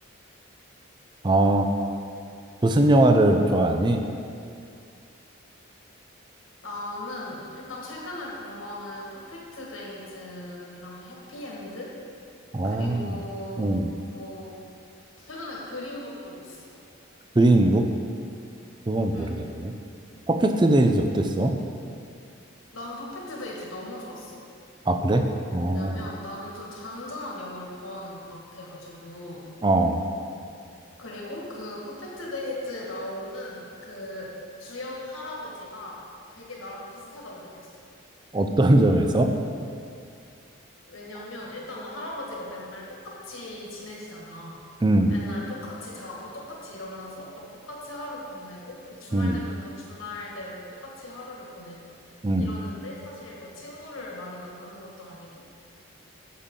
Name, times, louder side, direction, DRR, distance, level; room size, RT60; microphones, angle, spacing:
voice 1, 1.2-1.7 2.6-4.1 12.5-13.2 13.6-13.9 17.4-17.9 18.9-19.7 20.3-21.5 24.9-25.9 29.6-30.0 38.3-39.3 44.8-45.1 49.1-49.4 52.2-52.5, right 1 dB, 20° right, 5 dB, 0.4 m, -21 dB
voice 2, 6.6-11.9 12.6-13.7 14.0-14.5 15.2-16.7 19.1-19.4 22.7-24.4 25.6-29.4 31.0-34.3 34.6-36.0 36.3-37.8 40.9-44.6 45.1-55.9, left 1 dB, 80° left, -3 dB, 1.7 m, -39 dB
8.3 x 7.3 x 3.8 m, 2.4 s
head